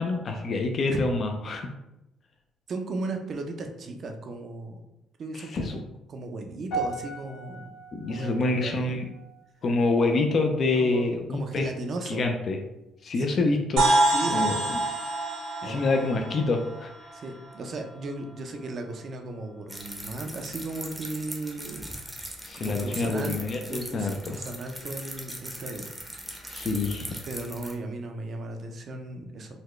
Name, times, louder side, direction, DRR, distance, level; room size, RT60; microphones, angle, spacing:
voice 1, 0.0-1.7 5.3-5.7 7.9-9.0 9.6-11.7 12.1-12.6 13.0-13.8 14.3-14.8 15.6-16.9 22.4-24.4 26.5-27.1, left 3 dB, 45° left, 3 dB, 0.4 m, -26 dB
voice 2, 2.7-4.8 5.2-7.7 8.1-9.0 10.8-12.2 13.2-13.6 14.1-14.7 15.6-16.0 17.1-22.0 22.5-25.9 26.5-26.7 27.2-29.6, right 2 dB, 45° right, 4 dB, 0.5 m, -36 dB
sound 1, 6.7-11.1 11.4-11.7 12.4-12.5, right 3 dB, 80° left, 1.5 m, -39 dB
sound 2, 13.8-17.5, right 2 dB, 80° right, 1.4 m, -26 dB
sound 3, 19.7-27.7, right 1 dB, 10° right, 0.7 m, -40 dB
3.9 x 2.2 x 3.1 m, 0.89 s
cardioid pair, 115°, 0 cm